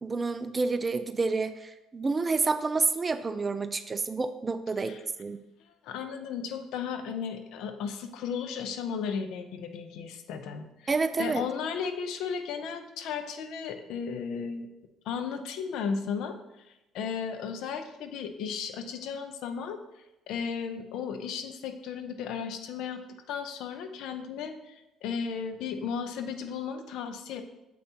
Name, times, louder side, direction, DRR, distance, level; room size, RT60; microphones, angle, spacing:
voice 1, 0.0-5.4 10.9-11.4, right 4 dB, 25° right, 11 dB, 0.4 m, -29 dB
voice 2, 5.8-10.9 11.2-14.7 15.1-16.4 16.9-19.8 20.3-23.0 23.3-27.4, left 6 dB, 75° left, 8 dB, 0.7 m, -35 dB
7.5 x 5.4 x 2.9 m, 0.94 s
cardioid pair, 90°, 0 cm